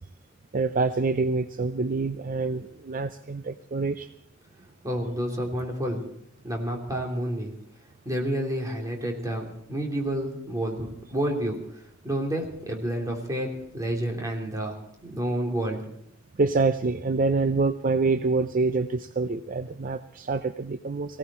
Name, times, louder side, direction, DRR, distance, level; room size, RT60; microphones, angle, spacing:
voice 1, 0.5-4.1 16.4-21.2, right 3 dB, 40° right, 11 dB, 0.5 m, -26 dB
voice 2, 4.8-6.1 6.4-7.5 8.0-15.9, right 1 dB, 15° right, 0 dB, 3.2 m, -30 dB
19.0 x 16.5 x 4.4 m, 0.73 s
head